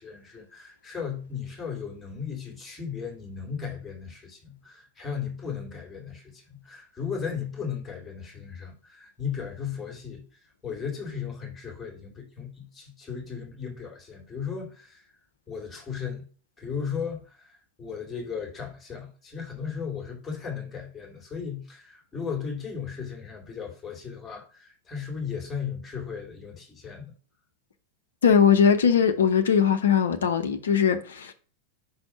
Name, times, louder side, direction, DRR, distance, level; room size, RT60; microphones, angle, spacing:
voice 1, 0.0-10.2 10.6-15.0 15.5-16.3 16.6-27.1, left 6 dB, 15° left, 2.7 m, -36 dB
voice 2, 28.2-31.3, left 7 dB, 65° left, 0.7 m, -20 dB
5.6 x 4.3 x 5.6 m
figure-of-eight pair, 90°, 0 cm